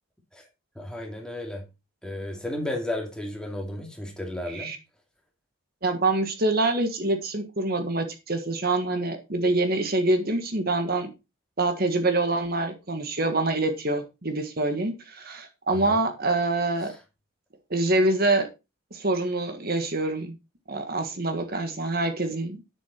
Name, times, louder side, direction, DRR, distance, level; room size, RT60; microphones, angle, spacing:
voice 1, 0.8-1.6 2.0-4.7 15.8-16.0, left 1 dB, 5° left, 0 dB, 2.5 m, -33 dB
voice 2, 5.8-11.1 11.6-16.9 17.7-18.5 18.9-20.3 20.7-22.6, right 2 dB, 45° right, 7 dB, 1.5 m, -25 dB
10.0 x 7.4 x 4.4 m, 0.27 s
head